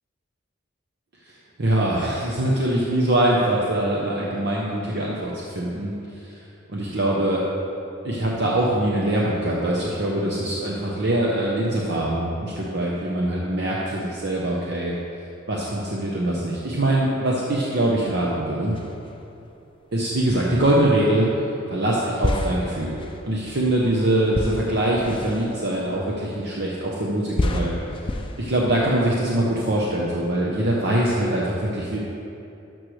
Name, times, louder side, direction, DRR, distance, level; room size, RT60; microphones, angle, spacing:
voice 1, 1.6-6.4 6.7-7.4 8.0-14.9 15.5-18.7 19.9-21.3 21.7-23.0 23.3-27.7 28.4-32.0, right 1 dB, 55° right, -4 dB, 0.9 m, -23 dB
sound 1, 18.7-19.5 20.3-21.2 22.2-26.7 27.3-29.3, left 1 dB, 25° left, 0.4 m, -30 dB
12.5 x 6.2 x 3.3 m, 2.8 s
head